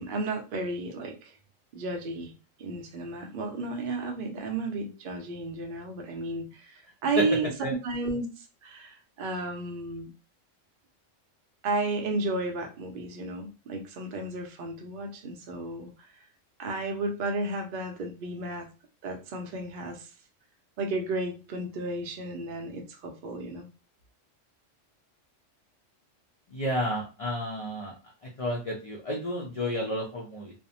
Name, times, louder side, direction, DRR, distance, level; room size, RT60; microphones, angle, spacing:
voice 1, 0.0-1.3 1.7-2.3 2.6-10.1 11.6-16.1 16.6-18.7 19.0-20.1 20.8-23.7, right 2 dB, 60° right, 4 dB, 0.6 m, -33 dB
voice 2, 26.5-27.9 28.4-30.5, equal, 60° left, -2 dB, 0.3 m, -31 dB
2.5 x 2.0 x 2.7 m, 0.33 s
omnidirectional pair, 1.3 m